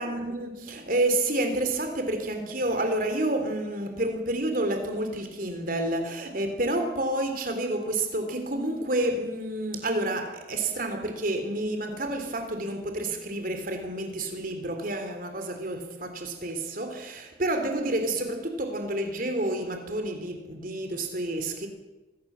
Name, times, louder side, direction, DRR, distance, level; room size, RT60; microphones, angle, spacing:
voice 1, 0.0-21.7, right 1 dB, 45° right, 3.5 m, -29 dB
23.5 x 16.0 x 7.6 m
head